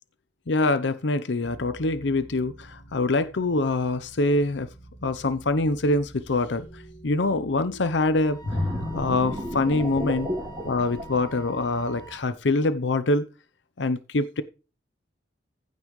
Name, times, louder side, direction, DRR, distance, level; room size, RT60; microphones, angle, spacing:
voice 1, 0.5-4.7 5.0-6.7 7.0-8.4 8.9-10.3 10.6-13.3 13.8-14.4, left 2 dB, 85° left, 0.7 m, -24 dB
sound 1, 1.4-12.1, right 1 dB, 60° left, 2.4 m, -48 dB
Wind instrument woodwind instrument, 8.2-12.2, right 5 dB, 25° left, 1.7 m, -46 dB
sound 2, 8.4-12.0 12.5-12.7, left 1 dB, 25° right, 2.7 m, -32 dB
15.5 x 5.5 x 3.1 m
head